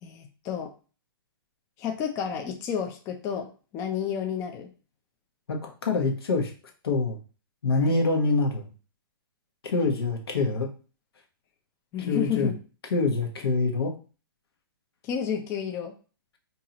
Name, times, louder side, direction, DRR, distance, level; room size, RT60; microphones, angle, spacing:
voice 1, 0.0-0.7 1.8-4.7 7.8-8.0 11.9-12.5 15.0-15.9, left 8 dB, 25° left, 4 dB, 0.5 m, -31 dB
voice 2, 5.5-6.5 6.8-7.2 7.6-8.7 9.6-10.7 12.1-12.5 12.9-13.9, left 3 dB, 80° left, 2 dB, 1.2 m, -25 dB
4.6 x 2.8 x 2.9 m, 0.36 s
hypercardioid pair, 140°, 13 cm